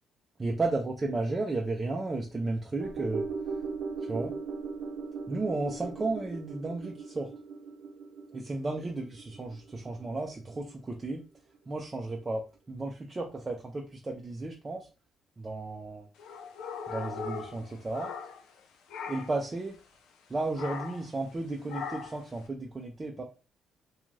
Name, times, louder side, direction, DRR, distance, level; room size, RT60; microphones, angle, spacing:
voice 1, 0.4-3.3 4.0-4.3 5.3-7.3 8.3-11.2 11.7-14.9 15.4-16.1 16.9-18.1 19.1-19.8 20.3-23.2, right 2 dB, 25° right, -1 dB, 0.5 m, -33 dB
sound 1, 2.8-11.2 11.5-11.6, right 4 dB, 80° right, 0.5 m, -39 dB
sound 2, 16.2-18.6 18.9-19.4 20.6-21.1 21.7-22.3, left 6 dB, 90° left, 0.4 m, -39 dB
2.5 x 2.3 x 3.1 m, 0.31 s
cardioid pair, 90°, 0 cm